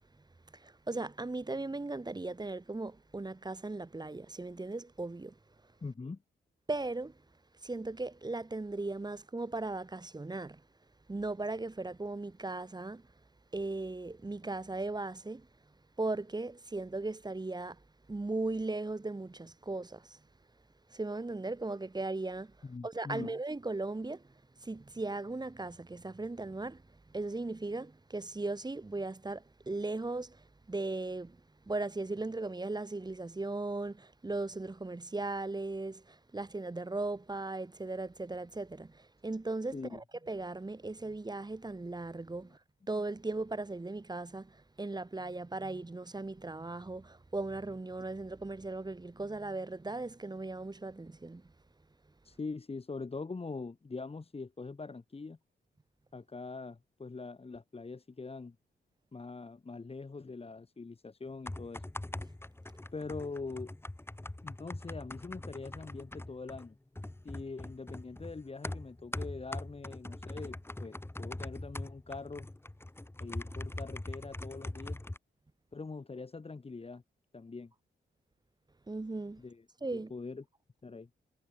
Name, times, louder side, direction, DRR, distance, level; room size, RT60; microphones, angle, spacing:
voice 1, 0.5-5.4 6.7-7.2 7.6-10.6 11.1-13.1 13.5-15.5 16.0-17.8 18.1-20.2 20.9-22.6 22.8-31.4 31.7-42.6 42.9-51.5 78.9-79.4 79.8-80.1, right 2 dB, 20° right, 1.9 m, -38 dB
voice 2, 5.8-6.2 22.6-23.3 39.7-40.0 52.2-55.4 56.1-58.5 59.1-61.8 62.9-63.7 64.4-66.7 67.2-72.5 73.2-75.0 75.7-77.0 77.3-77.7 79.4-79.6 79.9-80.4 80.8-81.1, left 4 dB, 30° left, 1.8 m, -43 dB
sound 1, 61.3-75.2, left 1 dB, 10° left, 2.7 m, -42 dB
cardioid pair, 80°, 20 cm